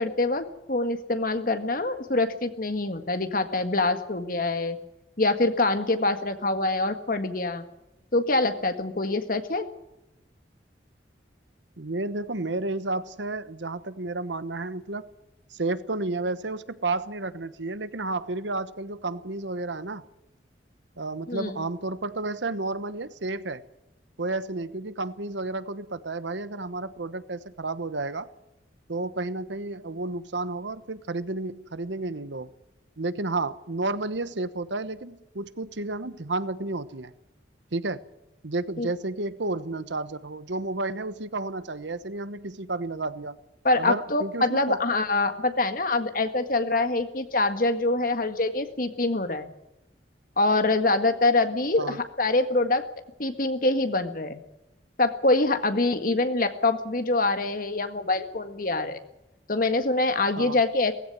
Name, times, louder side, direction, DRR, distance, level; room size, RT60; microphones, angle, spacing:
voice 1, 0.0-4.8 5.2-7.6 8.1-9.7 21.3-21.5 38.8-38.9 43.6-49.5 50.4-52.8 53.2-54.4 55.0-59.0 59.5-60.9, left 2 dB, 50° left, 8 dB, 1.8 m, -25 dB
voice 2, 11.8-15.1 15.5-20.0 21.0-23.6 24.2-28.3 28.9-32.5 33.0-37.1 37.7-38.0 38.4-43.4 43.8-44.8 51.8-52.0 60.4-60.6, right 2 dB, 85° right, 14 dB, 1.2 m, -31 dB
17.5 x 16.0 x 9.4 m, 0.93 s
head